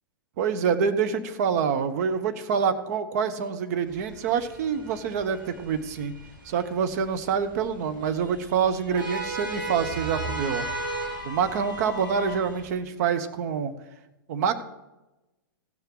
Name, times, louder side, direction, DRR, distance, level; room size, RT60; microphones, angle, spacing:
voice 1, 0.4-6.1 6.4-10.7 11.2-13.7 14.3-14.5, right 6 dB, 50° right, 9 dB, 1.2 m, -26 dB
sound 1, 3.9-12.7, right 1 dB, 75° right, 5.1 m, -36 dB
15.5 x 6.8 x 6.4 m, 1.0 s
figure-of-eight pair, 105°, 11 cm